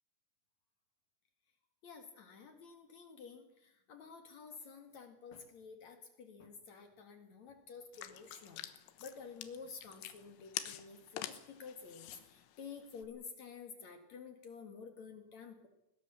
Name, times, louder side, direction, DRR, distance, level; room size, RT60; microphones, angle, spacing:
voice 1, 1.8-15.7, left 5 dB, 55° left, 6 dB, 2.1 m, -51 dB
sound 1, 7.9-13.1, left 13 dB, 80° left, 3.7 m, -47 dB
21.0 x 20.0 x 7.1 m, 0.85 s
omnidirectional pair, 6.0 m